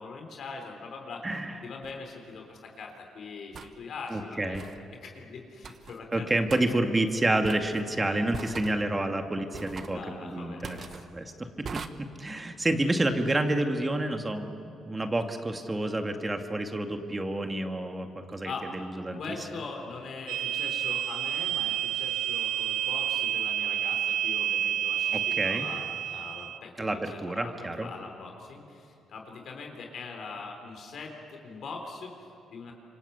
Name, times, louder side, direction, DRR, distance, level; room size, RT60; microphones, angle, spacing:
voice 1, 0.0-1.3 1.6-4.7 5.0-6.6 7.5-7.6 8.4-8.7 9.9-11.1 18.4-18.7 19.2-32.7, left 4 dB, 60° left, 2 dB, 4.0 m, -42 dB
sound 1, 1.8-2.0 3.5-3.7 4.5-4.8 5.6-6.0 6.5-6.6 7.4-7.8 8.3-8.8 9.5-10.0 10.6-11.1 11.6-11.9, right 6 dB, 50° right, 1.2 m, -41 dB
voice 2, 4.1-4.6 6.1-19.2 25.1-25.7 26.8-27.9, right 1 dB, 20° right, 5 dB, 2.2 m, -29 dB
sound 2, 20.3-26.6, right 10 dB, 85° right, 0.6 m, -29 dB
27.0 x 25.0 x 8.2 m, 2.7 s
cardioid pair, 90°, 0 cm